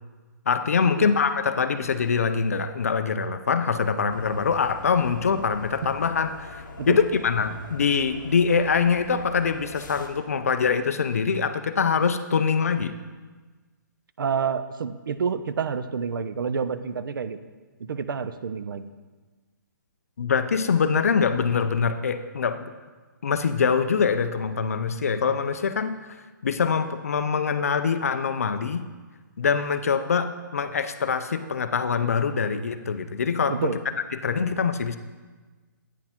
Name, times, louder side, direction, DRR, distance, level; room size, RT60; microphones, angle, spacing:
voice 1, 0.5-12.9 20.2-22.7 23.2-26.0 26.4-28.8 29.4-33.6 34.2-35.0, left 6 dB, 45° left, 10 dB, 0.4 m, -24 dB
sound 1, 4.1-10.1, left 3 dB, 65° left, 0.8 m, -43 dB
voice 2, 14.2-17.4 17.8-18.9 33.5-33.8, right 6 dB, 90° right, 13 dB, 0.4 m, -28 dB
9.0 x 4.7 x 3.5 m, 1.3 s
hypercardioid pair, 180°, 11 cm